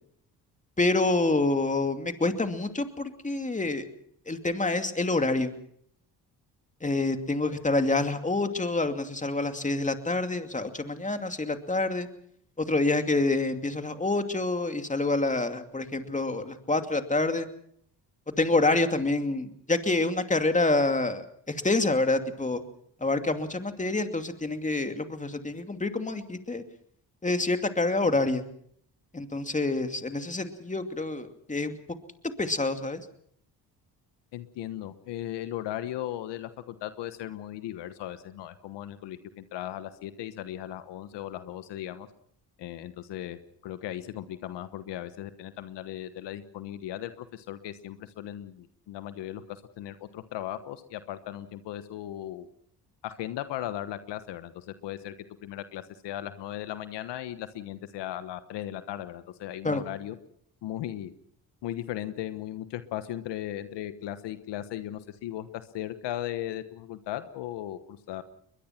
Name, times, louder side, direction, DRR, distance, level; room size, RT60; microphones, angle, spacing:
voice 1, 0.8-3.9 4.3-5.5 6.8-12.1 12.6-17.5 18.4-22.6 23.0-26.6 27.2-28.5 29.1-31.8 32.4-33.0 59.6-59.8, left 2 dB, 20° left, 7 dB, 2.5 m, -27 dB
voice 2, 34.3-42.1 42.6-52.5 53.0-60.1 60.6-61.1 61.6-68.2, left 12 dB, 80° left, 12 dB, 1.3 m, -37 dB
22.0 x 21.5 x 5.9 m, 0.66 s
supercardioid pair, 70°, 41 cm